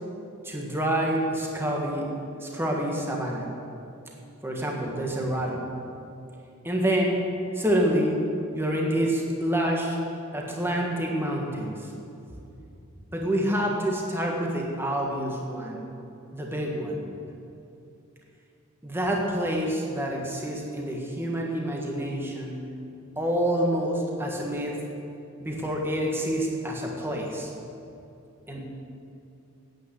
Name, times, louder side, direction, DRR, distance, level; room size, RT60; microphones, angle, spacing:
voice 1, 0.4-2.1 2.4-3.5 4.4-5.7 6.6-7.3 7.5-8.2 8.5-10.0 10.3-11.9 13.1-15.8 16.3-17.0 18.8-22.6 23.2-24.8 25.4-27.5 28.5-28.6, right 1 dB, 10° right, -1 dB, 1.6 m, -27 dB
9.4 x 9.0 x 8.2 m, 2.8 s
head